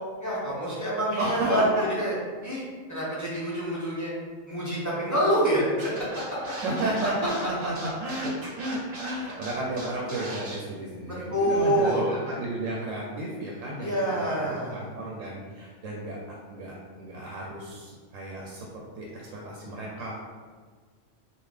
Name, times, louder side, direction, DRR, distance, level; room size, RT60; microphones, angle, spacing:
voice 1, 0.2-1.6 2.0-2.1 2.4-2.6 2.9-4.1 4.5-5.9 11.3-12.1 13.8-14.8, equal, 20° left, -8 dB, 0.6 m, -26 dB
voice 2, 1.2-1.8 6.6-18.7 19.0-20.2, right 1 dB, 80° right, -2 dB, 1.0 m, -33 dB
Scratching (performance technique), 5.8-10.6, right 1 dB, 50° right, 0.9 m, -38 dB
3.7 x 2.4 x 3.2 m, 1.5 s
omnidirectional pair, 1.3 m